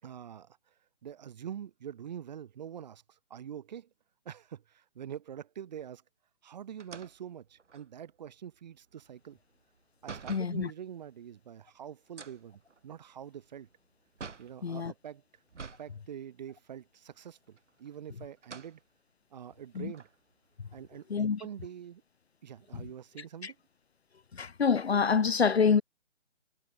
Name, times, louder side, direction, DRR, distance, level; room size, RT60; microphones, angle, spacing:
voice 1, 0.0-3.9 4.3-6.0 6.4-9.4 10.0-13.7 14.4-15.2 15.6-18.8 19.3-20.1 20.7-22.0 22.4-23.6, right 9 dB, 35° right, 7.0 m, -45 dB
sound 1, 6.8-10.6 12.0-14.6 15.5-15.9 16.3-16.4 17.5-18.0 18.4-18.8 19.4-19.5 19.9-21.3, right 5 dB, 70° right, 2.8 m, -48 dB
voice 2, 10.3-10.7 14.6-14.9 19.8-19.9 21.1-21.4 22.7-22.8 23.4-23.5 24.3-25.8, left 6 dB, 55° left, 2.1 m, -26 dB
figure-of-eight pair, 160°, 37 cm